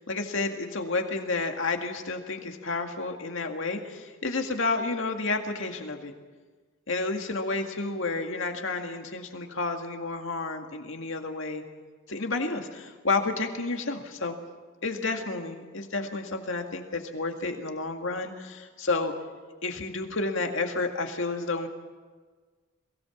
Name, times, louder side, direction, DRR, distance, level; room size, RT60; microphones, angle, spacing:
voice 1, 0.1-6.1 6.9-11.6 12.1-14.4 14.8-19.1 19.6-21.7, left 3 dB, 65° left, 4 dB, 2.1 m, -30 dB
22.5 x 17.0 x 7.2 m, 1.4 s
head